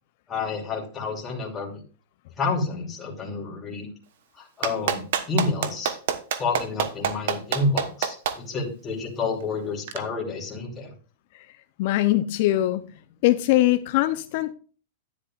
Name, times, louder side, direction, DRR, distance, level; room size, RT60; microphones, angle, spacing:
voice 1, 0.3-1.8 2.4-3.9 4.4-5.9 6.4-10.9, left 3 dB, 20° left, 2.7 m, -29 dB
Clapping, 4.6-8.3 9.9-10.0, right 9 dB, 70° right, 1.2 m, -25 dB
voice 2, 11.3-12.9 13.2-14.5, left 16 dB, 55° left, 0.6 m, -22 dB
10.5 x 10.0 x 2.4 m
hypercardioid pair, 135°, 0 cm